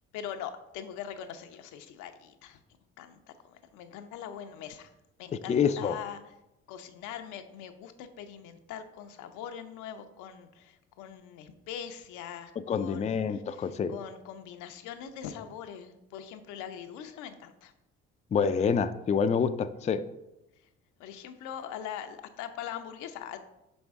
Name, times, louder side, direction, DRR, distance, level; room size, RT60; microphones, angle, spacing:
voice 1, 0.1-2.6 3.0-3.2 3.4-4.9 5.2-6.2 6.7-17.7 21.0-23.4, left 9 dB, 80° left, 8 dB, 0.6 m, -42 dB
voice 2, 5.5-6.0 12.7-13.9 18.3-20.0, left 6 dB, 25° left, 11 dB, 0.3 m, -27 dB
5.5 x 5.2 x 3.5 m, 0.91 s
supercardioid pair, 70°, 29 cm